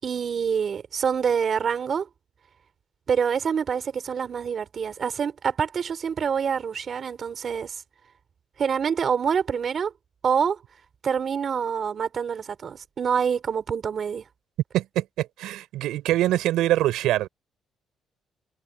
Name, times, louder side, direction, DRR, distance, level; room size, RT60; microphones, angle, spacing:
voice 1, 0.0-2.1 3.1-7.8 8.6-9.9 10.2-10.6 11.0-14.2, right 7 dB, 50° right, 5.0 m, -26 dB
voice 2, 14.7-17.3, right 14 dB, 90° right, 6.8 m, -24 dB
cardioid pair, 90°, 0 cm